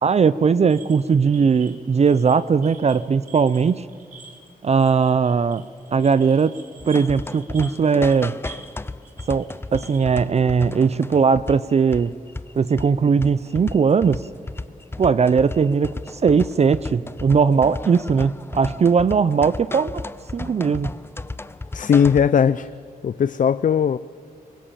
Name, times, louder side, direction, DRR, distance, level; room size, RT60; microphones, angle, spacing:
voice 1, 0.0-3.9 4.6-6.5 6.9-8.4 9.3-12.1 12.5-14.3 15.0-20.1 20.3-20.9, right 5 dB, 45° right, 16 dB, 0.6 m, -19 dB
sound 1, 0.7-8.8 9.0-10.2, right 4 dB, 65° right, 3.0 m, -46 dB
sound 2, 6.8-22.4, left 2 dB, 15° left, 0.6 m, -34 dB
voice 2, 21.7-22.7 23.0-24.0, left 7 dB, 60° left, 15 dB, 0.5 m, -18 dB
23.5 x 20.0 x 7.4 m, 2.4 s
cardioid pair, 90°, 15 cm